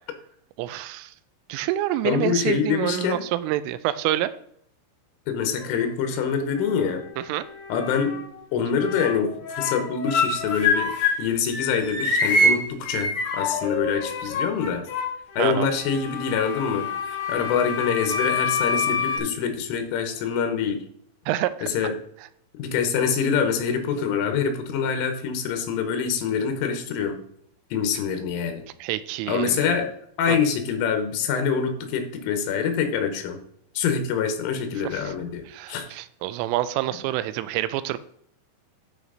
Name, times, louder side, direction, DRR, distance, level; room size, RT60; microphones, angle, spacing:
voice 1, 0.6-1.1 1.5-4.3 7.2-7.5 15.4-15.7 21.3-21.7 28.8-29.6 30.3-30.4 34.9-35.1 35.5-38.0, right 14 dB, 85° right, 14 dB, 3.1 m, -27 dB
voice 2, 2.1-3.2 5.3-7.0 7.7-8.2 8.5-10.9 11.2-14.9 15.4-20.8 21.6-21.9 22.6-27.2 27.7-28.6 29.3-29.9 30.2-33.4 33.8-35.9, left 6 dB, 85° left, 6 dB, 3.6 m, -25 dB
sound 1, 5.6-6.2 6.6-8.4 8.7-11.3 11.5-19.2, left 3 dB, 60° left, 3.6 m, -27 dB
12.5 x 4.8 x 4.0 m, 0.68 s
omnidirectional pair, 5.7 m